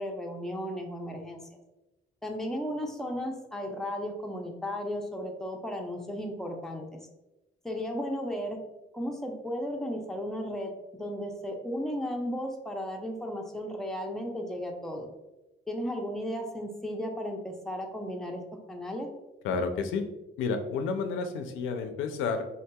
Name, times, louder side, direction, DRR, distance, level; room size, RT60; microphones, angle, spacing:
voice 1, 0.0-1.4 2.2-7.0 7.6-8.6 8.9-15.1 15.7-18.4 18.7-19.1, equal, ahead, 1 dB, 0.5 m, -35 dB
voice 2, 19.4-20.0 20.4-22.4, left 5 dB, 90° left, 6 dB, 0.4 m, -30 dB
3.8 x 2.7 x 2.2 m, 1.0 s
cardioid pair, 90°, 20 cm